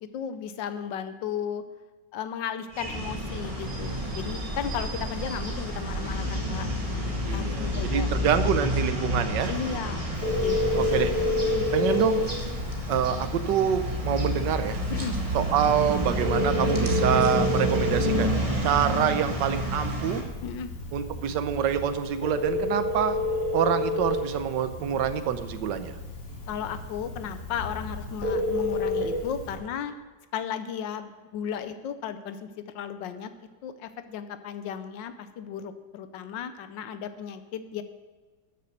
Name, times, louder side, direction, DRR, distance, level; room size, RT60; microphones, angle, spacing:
voice 1, 0.0-1.6 2.1-6.7 7.0-8.8 9.5-11.0 11.4-11.7 14.9-15.1 20.4-20.7 26.5-29.9 30.3-33.3 33.6-37.8, left 8 dB, 90° left, 10 dB, 1.4 m, -35 dB
sound 1, 2.7-20.2, equal, 20° right, 1.8 m, -29 dB
sound 2, 3.3-11.3, left 1 dB, 20° left, 1.7 m, -45 dB
voice 2, 7.2-9.5 10.7-11.1 11.7-12.2 12.9-14.8 15.3-18.3 18.6-20.2 20.9-23.2 23.5-25.9, right 9 dB, 80° right, 11 dB, 1.4 m, -26 dB
Telephone, 10.1-29.5, left 2 dB, 70° left, 3.3 m, -31 dB
13.5 x 6.9 x 6.5 m, 1.4 s
omnidirectional pair, 1.9 m